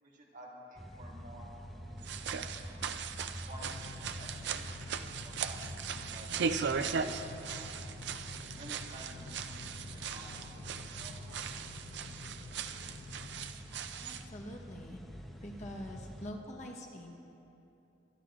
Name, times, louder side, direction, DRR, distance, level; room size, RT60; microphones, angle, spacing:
voice 1, 0.0-2.9 3.5-7.9 8.6-11.2, right 1 dB, 45° right, -3 dB, 1.8 m, -53 dB
sound 1, 0.8-16.3, equal, ahead, 0.7 m, -48 dB
sound 2, 2.0-14.2, right 6 dB, 65° right, 0.4 m, -39 dB
sound 3, 3.6-13.5, left 5 dB, 60° left, 0.3 m, -51 dB
voice 2, 14.0-15.0 15.4-17.2, equal, 40° left, 0 dB, 1.1 m, -45 dB
22.0 x 11.5 x 2.5 m, 2.8 s
head